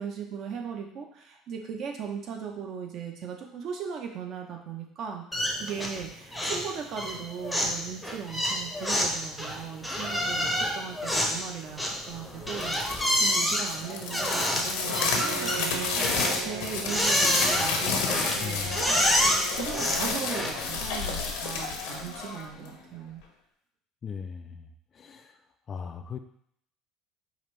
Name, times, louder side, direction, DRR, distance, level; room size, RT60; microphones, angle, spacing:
voice 1, 0.0-23.2, right 7 dB, 50° right, 3 dB, 0.7 m, -38 dB
sound 1, 5.3-6.1 6.3-6.7 7.0-20.8, equal, ahead, 0.7 m, -28 dB
sound 2, 12.5-22.8, left 4 dB, 85° left, 0.8 m, -31 dB
Bowed string instrument, 14.7-20.2, right 4 dB, 80° right, 0.4 m, -39 dB
voice 2, 18.4-18.9 24.0-24.7 24.9-25.4 25.7-26.2, left 6 dB, 30° left, 7 dB, 0.3 m, -38 dB
5.0 x 2.6 x 3.2 m, 0.70 s
cardioid pair, 130°, 0 cm